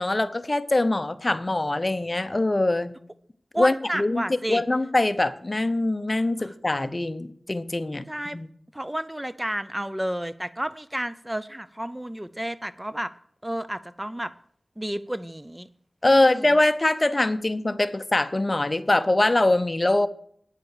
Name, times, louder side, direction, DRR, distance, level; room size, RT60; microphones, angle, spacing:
voice 1, 0.0-2.9 3.6-4.2 4.5-8.0 8.3-8.5 16.0-20.1, left 2 dB, 35° left, 12 dB, 0.9 m, -23 dB
voice 2, 3.5-4.6 6.4-6.5 8.1-8.4 8.7-13.1 13.4-14.3 14.8-15.7 16.0-16.5, right 1 dB, 15° right, 14 dB, 0.6 m, -31 dB
9.8 x 7.6 x 6.6 m, 0.63 s
wide cardioid pair, 50°, 0 cm